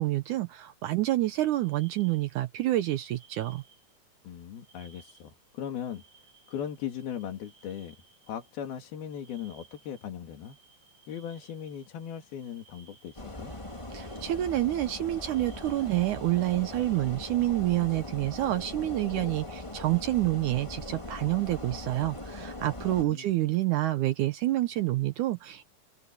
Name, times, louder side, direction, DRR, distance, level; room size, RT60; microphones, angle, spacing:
voice 1, 0.0-3.6 13.9-25.7, right 16 dB, 75° right, 1.9 m, -28 dB
sound 1, 1.5-2.5 2.8-16.5, right 5 dB, 45° right, 6.7 m, -61 dB
voice 2, 4.2-6.0 6.5-8.0 8.3-10.6 11.1-13.5 23.0-23.3, left 9 dB, 80° left, 4.3 m, -38 dB
sound 2, 13.2-23.0, left 2 dB, 10° left, 1.8 m, -40 dB
open air
omnidirectional pair, 4.3 m